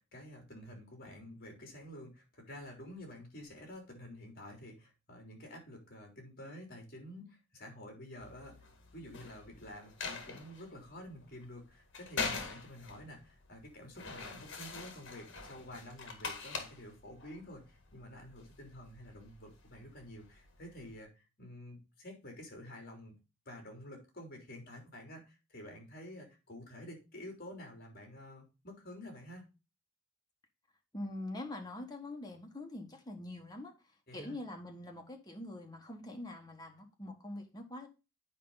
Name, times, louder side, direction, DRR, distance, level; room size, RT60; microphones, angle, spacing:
voice 1, 0.0-8.6 8.9-23.1 23.4-29.5 34.1-34.3, left 1 dB, 50° left, 3.4 m, -50 dB
sound 1, 8.2-21.0, left 4 dB, 65° left, 1.9 m, -45 dB
voice 2, 30.9-37.9, left 1 dB, 20° left, 1.6 m, -44 dB
9.5 x 5.0 x 4.0 m
head